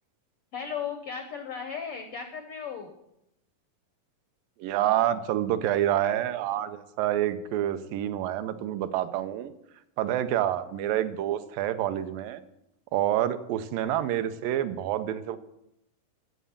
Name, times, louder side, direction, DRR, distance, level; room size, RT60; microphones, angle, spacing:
voice 1, 0.5-2.9, left 7 dB, 90° left, 5 dB, 1.2 m, -36 dB
voice 2, 4.6-9.5 10.0-12.4 12.9-15.4, right 12 dB, 85° right, 11 dB, 2.3 m, -27 dB
11.0 x 7.4 x 7.1 m, 0.83 s
omnidirectional pair, 4.0 m